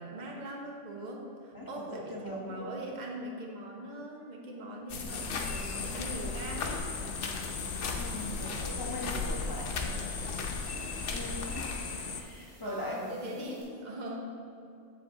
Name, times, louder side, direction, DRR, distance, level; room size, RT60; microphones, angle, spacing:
voice 1, 0.0-6.8 12.6-14.2, right 1 dB, 40° right, 0 dB, 1.1 m, -41 dB
voice 2, 1.5-2.7 8.0-10.0 11.1-13.7, left 1 dB, 20° left, -4 dB, 1.2 m, -41 dB
sound 1, 4.9-11.8, left 4 dB, 75° left, 1.1 m, -37 dB
sound 2, 5.1-12.2, left 5 dB, 45° left, 0.6 m, -39 dB
sound 3, 6.3-13.6, right 1 dB, 70° right, 2.5 m, -60 dB
7.6 x 7.0 x 3.8 m, 2.7 s
omnidirectional pair, 1.2 m